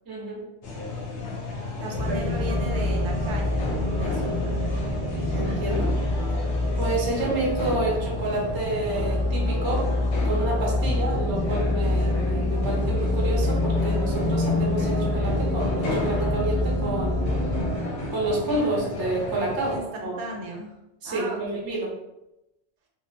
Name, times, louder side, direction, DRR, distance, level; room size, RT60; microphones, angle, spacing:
voice 1, 0.1-0.4 1.8-2.2 5.3-5.9 6.8-9.9 10.2-17.3 18.1-20.1 21.0-21.9, right 2 dB, 30° right, -3 dB, 0.4 m, -29 dB
sound 1, 0.6-19.8, left 3 dB, 90° left, 0.9 m, -33 dB
voice 2, 1.8-4.7 19.7-20.8 21.0-21.7, right 1 dB, 80° right, 0 dB, 0.9 m, -37 dB
sound 2, 1.9-17.8, left 1 dB, 35° left, 0.4 m, -26 dB
sound 3, 6.2-6.4 8.9-11.4, equal, 70° left, 0.7 m, -42 dB
2.7 x 2.1 x 2.5 m, 0.92 s
omnidirectional pair, 1.1 m